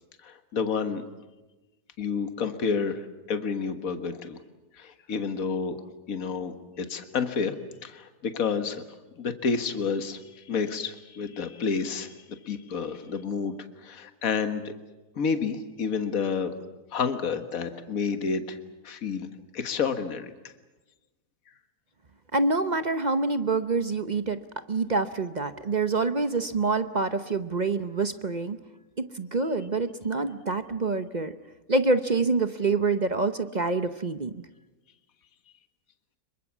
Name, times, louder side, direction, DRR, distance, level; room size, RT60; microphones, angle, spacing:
voice 1, 0.2-1.0 2.0-4.4 4.7-5.8 6.1-7.6 7.8-8.8 9.2-14.7 15.2-16.5 16.9-18.6 18.8-19.3 19.5-20.5, left 5 dB, 60° left, 9 dB, 1.9 m, -30 dB
voice 2, 22.3-24.4 24.7-28.6 29.0-31.3 31.7-34.3, right 3 dB, 35° right, 10 dB, 0.8 m, -26 dB
26.0 x 23.5 x 7.3 m, 1.1 s
omnidirectional pair, 1.7 m